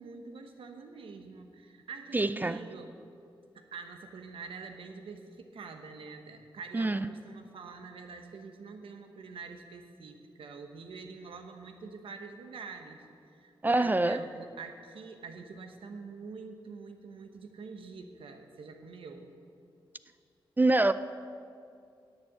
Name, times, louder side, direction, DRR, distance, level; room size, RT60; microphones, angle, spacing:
voice 1, 0.0-3.0 3.5-13.0 13.3-19.3, right 4 dB, 85° right, 1.0 m, -46 dB
voice 2, 2.1-2.6 6.7-7.1 13.6-14.2 20.6-20.9, right 2 dB, 20° right, 0.3 m, -25 dB
10.5 x 7.1 x 7.8 m
cardioid pair, 70°, 9 cm